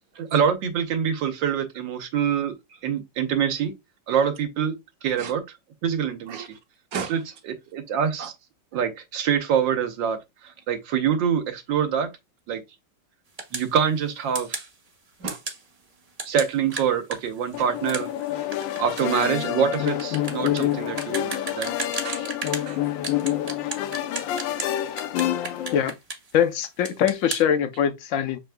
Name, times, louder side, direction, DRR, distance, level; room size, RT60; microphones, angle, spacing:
voice 1, 0.2-2.5 2.8-3.7 4.1-4.8 5.0-5.4 5.8-6.4 7.1-7.2 7.7-8.3 8.7-10.2 10.7-12.1 12.5-12.6 13.5-14.6 16.2-18.1 18.8-21.7, right 8 dB, 80° right, 1.6 m, -25 dB
voice 2, 6.3-6.6 6.9-7.2 15.2-15.6 18.3-18.4 19.0-19.1 22.0-23.0 23.5-23.8, right 6 dB, 60° right, 1.2 m, -37 dB
sound 1, 13.4-13.7 14.3-14.7 15.3-15.6 16.2-22.7 23.0-24.7 25.0-26.3 26.6-27.4, right 3 dB, 35° right, 0.6 m, -34 dB
sound 2, 17.5-25.8, left 12 dB, 90° left, 1.3 m, -28 dB
voice 3, 26.3-28.4, left 9 dB, 65° left, 0.8 m, -22 dB
6.6 x 3.4 x 2.2 m
omnidirectional pair, 2.0 m